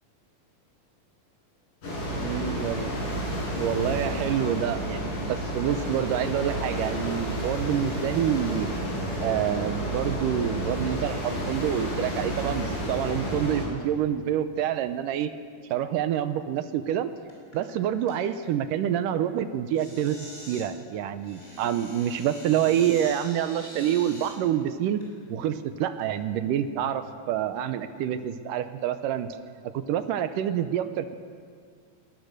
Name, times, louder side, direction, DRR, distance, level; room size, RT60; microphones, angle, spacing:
sound 1, 1.8-13.6, equal, 70° left, 9.5 m, -31 dB
voice 1, 2.2-2.9 3.6-8.7 9.2-15.3 15.7-17.1 17.5-25.0 25.3-29.4 29.7-31.2, right 10 dB, 75° right, 11 dB, 2.3 m, -27 dB
sound 2, 17.3-17.7 18.1-18.5 19.7-20.7 21.2-24.3 25.0-25.1 25.8-26.1, left 1 dB, 20° left, 7.0 m, -43 dB
20.5 x 20.0 x 6.6 m, 2.1 s
omnidirectional pair, 4.0 m